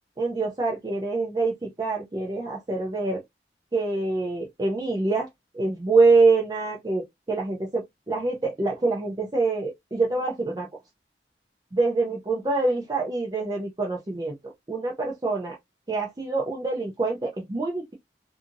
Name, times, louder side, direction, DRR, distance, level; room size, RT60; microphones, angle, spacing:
voice 1, 0.2-3.2 3.7-5.3 5.5-10.7 11.7-15.6 15.9-17.9, right 3 dB, 20° right, 0.5 m, -25 dB
2.7 x 2.5 x 2.5 m
head